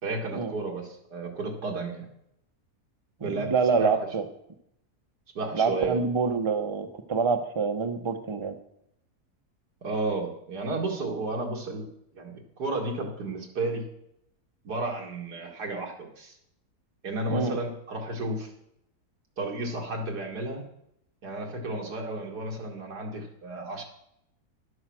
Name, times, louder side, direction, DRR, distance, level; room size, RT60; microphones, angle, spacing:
voice 1, 0.0-2.1 3.2-3.9 5.4-6.0 9.8-11.9 12.2-13.9 14.6-16.3 17.0-18.5 19.4-20.6 21.2-23.8, right 2 dB, 85° right, 0 dB, 2.4 m, -32 dB
voice 2, 3.2-4.2 5.5-8.5 17.3-17.6, right 5 dB, 25° right, 7 dB, 0.7 m, -26 dB
11.5 x 7.9 x 6.3 m, 0.77 s
omnidirectional pair, 1.7 m